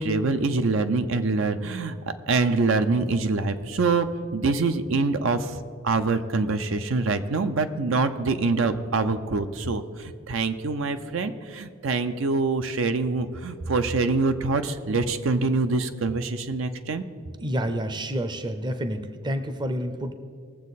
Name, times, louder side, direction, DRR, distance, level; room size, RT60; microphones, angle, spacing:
voice 1, 0.0-2.0 2.3-5.6 5.8-17.0, right 3 dB, 75° right, 9 dB, 0.6 m, -25 dB
voice 2, 17.4-20.1, equal, 20° right, 9 dB, 0.6 m, -29 dB
20.0 x 7.3 x 4.1 m, 2.2 s
head